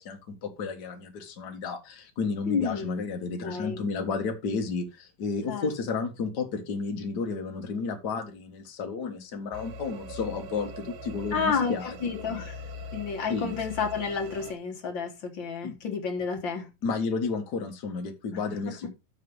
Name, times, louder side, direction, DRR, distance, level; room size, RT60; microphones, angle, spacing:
voice 1, 0.0-12.4 13.3-13.6 15.6-15.7 16.8-18.9, left 4 dB, 70° left, 0.9 m, -32 dB
voice 2, 2.5-3.0 3.4-3.8 5.5-5.7 11.3-12.6 12.9-16.7 18.7-18.8, left 5 dB, 55° left, 1.3 m, -30 dB
sound 1, 9.5-14.5, equal, 85° right, 2.8 m, -41 dB
6.6 x 6.2 x 5.3 m
omnidirectional pair, 3.9 m